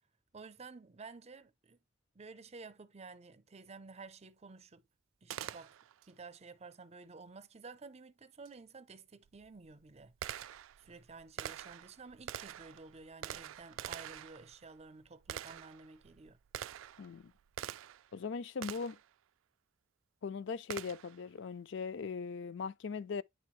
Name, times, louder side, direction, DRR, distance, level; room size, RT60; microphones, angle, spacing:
voice 1, 0.3-1.8 2.1-4.9 5.2-5.8 6.1-10.5 10.8-16.4, right 4 dB, 35° right, 0.6 m, -52 dB
Gunshot gunfire, 5.3-6.1 8.4-8.5 9.3-18.1 18.6-19.1 20.7-21.2, right 11 dB, 90° right, 0.3 m, -46 dB
voice 2, 17.0-17.3 18.1-19.0 20.2-23.2, left 5 dB, 65° left, 0.4 m, -39 dB
9.2 x 3.5 x 3.1 m
head